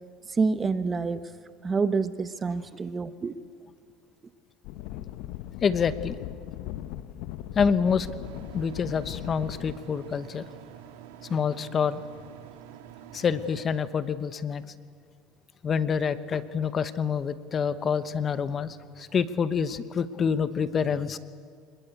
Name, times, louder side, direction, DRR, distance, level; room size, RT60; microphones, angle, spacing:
voice 1, 0.4-1.2 1.6-3.3, right 4 dB, 25° right, 12 dB, 1.0 m, -27 dB
sound 1, 4.6-9.7, left 13 dB, 70° left, 1.0 m, -38 dB
voice 2, 5.6-6.2 7.5-8.1 8.5-10.4 11.3-12.0 13.1-14.6 15.6-21.2, left 6 dB, 35° left, 13 dB, 1.0 m, -27 dB
sound 2, 8.2-13.6, right 10 dB, 85° right, 1.8 m, -47 dB
25.5 x 21.0 x 8.3 m, 2.1 s
supercardioid pair, 105°, 0 cm